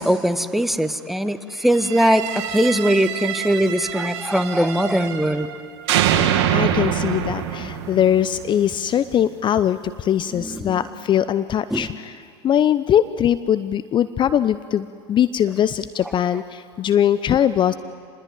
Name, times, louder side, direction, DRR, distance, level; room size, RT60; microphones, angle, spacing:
voice 1, 0.0-5.5 10.3-10.8 11.7-11.9, equal, ahead, 11 dB, 1.4 m, -21 dB
sound 1, 1.7-5.6 5.9-8.9, right 10 dB, 65° right, 2.2 m, -25 dB
voice 2, 6.5-12.2 12.4-17.7, left 10 dB, 35° left, 14 dB, 0.7 m, -21 dB
27.0 x 20.5 x 9.3 m, 2.2 s
hypercardioid pair, 80°, 14 cm